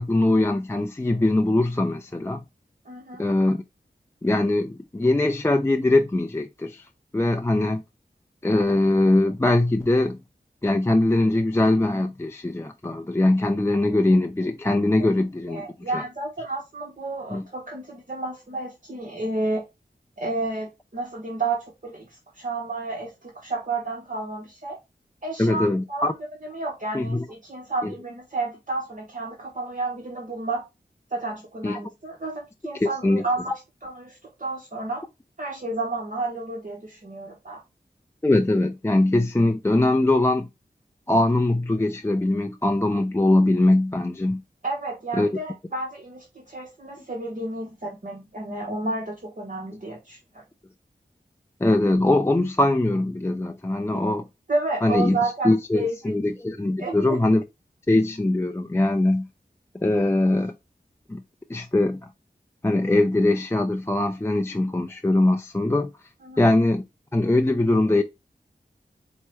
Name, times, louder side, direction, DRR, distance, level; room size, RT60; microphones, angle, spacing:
voice 1, 0.0-2.4 3.2-3.6 4.2-6.9 7.1-7.8 8.4-10.2 10.6-15.7 15.9-16.0 17.3-17.4 25.4-26.1 26.9-27.3 27.8-27.9 31.6-31.8 32.8-33.2 38.2-40.5 41.1-44.4 45.1-45.3 51.6-54.2 54.8-55.2 55.4-57.4 57.9-59.3 59.8-60.5 61.1-61.2 61.5-62.0 62.6-65.9 66.4-66.8 67.1-68.0, left 2 dB, 15° left, 0.4 m, -21 dB
voice 2, 2.8-3.3 15.0-15.1 15.5-19.6 20.2-24.8 25.2-26.1 26.4-30.6 31.1-35.0 35.4-37.6 44.6-50.4 54.5-56.1 56.8-57.2 66.2-66.5, right 2 dB, 45° right, 1.0 m, -31 dB
4.5 x 2.1 x 4.3 m
wide cardioid pair, 45°, 18 cm